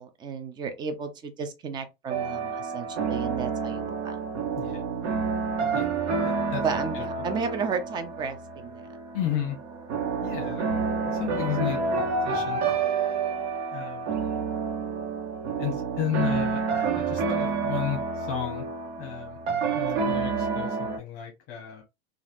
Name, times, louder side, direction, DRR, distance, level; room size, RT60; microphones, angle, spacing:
voice 1, 0.0-4.2 6.6-8.8, right 5 dB, 15° right, 0.3 m, -33 dB
sound 1, 2.1-21.0, right 5 dB, 75° right, 1.1 m, -29 dB
voice 2, 6.2-6.6 6.9-7.0 9.1-9.6 10.2-10.6 11.1-12.6 13.7-14.1 15.6-18.6 19.0-19.4 19.7-21.8, left 10 dB, 40° left, 0.9 m, -33 dB
3.3 x 2.4 x 2.5 m
supercardioid pair, 140°, 33 cm